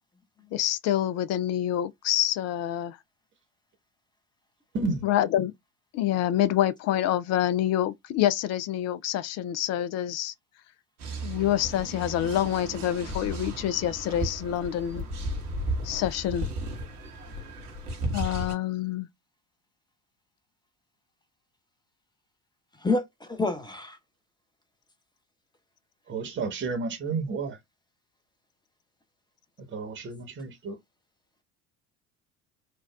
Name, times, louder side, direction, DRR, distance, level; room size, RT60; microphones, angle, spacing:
voice 1, 0.5-3.0 5.0-5.5 5.9-10.3 11.2-15.0 15.8-16.5 18.1-19.1, left 12 dB, 35° left, 0.4 m, -27 dB
voice 2, 4.7-5.1 26.1-27.6 29.6-30.8, right 4 dB, 25° right, 1.0 m, -31 dB
sound 1, 11.0-18.5, right 1 dB, 80° right, 1.2 m, -34 dB
voice 3, 22.8-24.0, left 3 dB, 10° left, 1.0 m, -29 dB
4.7 x 2.3 x 2.3 m
figure-of-eight pair, 65°, 44 cm